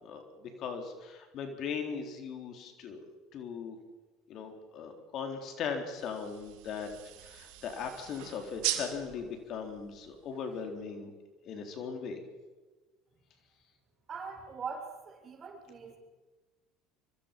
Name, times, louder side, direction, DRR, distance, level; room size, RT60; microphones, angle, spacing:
voice 1, 0.0-3.8 4.3-6.9 7.2-11.1 11.4-12.2, left 6 dB, 55° left, 5 dB, 3.9 m, -39 dB
sound 1, 6.0-10.8, right 13 dB, 75° right, 2.8 m, -40 dB
voice 2, 14.1-16.0, right 5 dB, 40° right, 1 dB, 7.4 m, -42 dB
25.5 x 24.0 x 5.4 m, 1.3 s
hypercardioid pair, 75°, 0 cm